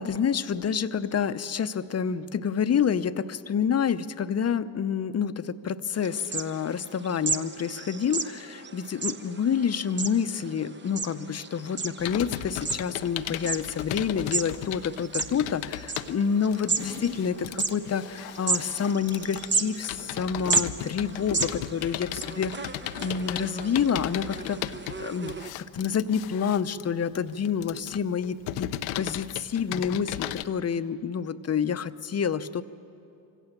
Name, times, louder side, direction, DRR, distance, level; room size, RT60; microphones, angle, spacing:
voice 1, 0.0-22.6 23.0-24.7 25.0-32.6, left 7 dB, 35° left, 13 dB, 0.8 m, -28 dB
sound 1, 5.9-25.5, right 4 dB, 25° right, 1.0 m, -34 dB
Computer keyboard, 12.0-30.4, left 13 dB, 85° left, 0.7 m, -36 dB
24.0 x 16.0 x 7.4 m, 2.6 s
supercardioid pair, 65°, 44 cm